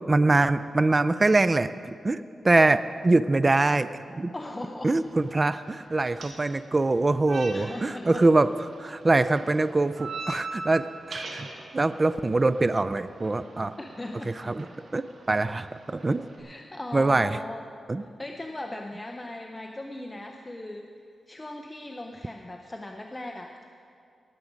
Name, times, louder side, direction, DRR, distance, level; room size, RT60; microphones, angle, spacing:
voice 1, 0.0-4.3 4.8-8.5 8.8-11.5 11.7-13.8 14.5-14.6 14.9-15.0 15.3-16.2 16.9-17.3 17.9-18.0, right 2 dB, 25° right, 13 dB, 0.3 m, -23 dB
voice 2, 4.3-5.0 5.7-5.8 7.5-8.3 13.8-14.6 16.4-17.7 18.0-20.8 21.3-23.6, left 1 dB, 15° left, 3 dB, 0.6 m, -38 dB
sound 1, 4.9-16.4, right 3 dB, 75° right, 1.7 m, -43 dB
18.5 x 7.3 x 5.1 m, 2.5 s
wide cardioid pair, 115°, 0 cm